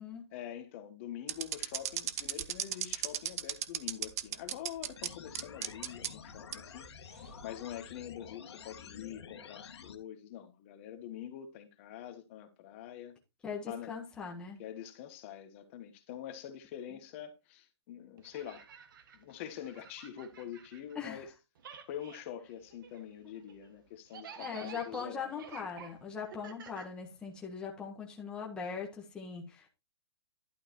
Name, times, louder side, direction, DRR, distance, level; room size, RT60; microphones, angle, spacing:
voice 1, 0.3-6.9 7.4-13.2 13.7-13.9 14.6-18.7 19.1-21.3 21.9-25.3, left 10 dB, 30° left, 1.3 m, -45 dB
sound 1, 1.3-5.1 5.3-6.1 6.5-6.6 7.3-7.5, right 11 dB, 35° right, 0.6 m, -34 dB
sound 2, 5.0-10.0, left 7 dB, 75° left, 1.8 m, -50 dB
voice 2, 13.4-14.6 20.9-21.2 24.4-29.7, left 6 dB, 5° left, 1.5 m, -40 dB
sound 3, 18.2-21.3 21.6-27.6, right 7 dB, 50° right, 1.6 m, -52 dB
11.5 x 4.7 x 4.5 m
hypercardioid pair, 170°, 14 cm